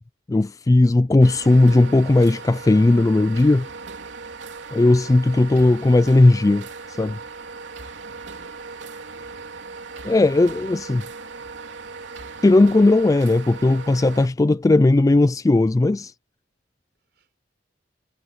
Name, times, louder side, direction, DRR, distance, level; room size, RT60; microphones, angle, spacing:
voice 1, 0.3-3.7 4.7-6.7 7.0-7.2 10.0-11.0 12.4-16.1, left 2 dB, 20° left, 0.3 m, -17 dB
sound 1, 1.2-14.3, right 4 dB, 85° right, 3.2 m, -38 dB
voice 2, 8.3-9.7 12.2-12.5 16.9-17.3, right 2 dB, 65° right, 6.6 m, -57 dB
head